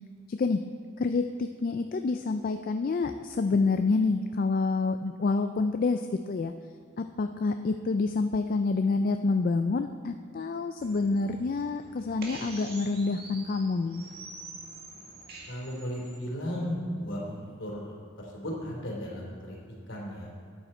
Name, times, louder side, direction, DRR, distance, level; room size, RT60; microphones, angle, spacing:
voice 1, 0.3-0.6 1.0-6.5 7.0-14.0, left 3 dB, 45° left, 7 dB, 0.3 m, -28 dB
sound 1, 10.8-16.2, right 2 dB, 50° right, 1.8 m, -46 dB
voice 2, 15.5-19.6 19.9-20.3, equal, 65° left, -3 dB, 3.0 m, -35 dB
13.0 x 9.0 x 4.3 m, 2.4 s
head